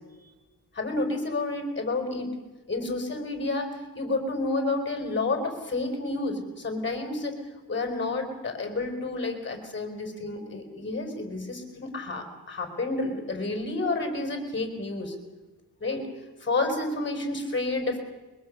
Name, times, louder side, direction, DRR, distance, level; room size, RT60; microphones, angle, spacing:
voice 1, 0.7-2.3 2.7-3.7 3.9-7.4 7.7-15.1 15.8-16.0 16.4-18.0, left 2 dB, 30° left, 4 dB, 5.0 m, -30 dB
23.0 x 21.5 x 6.7 m, 1.2 s
wide cardioid pair, 130°, 36 cm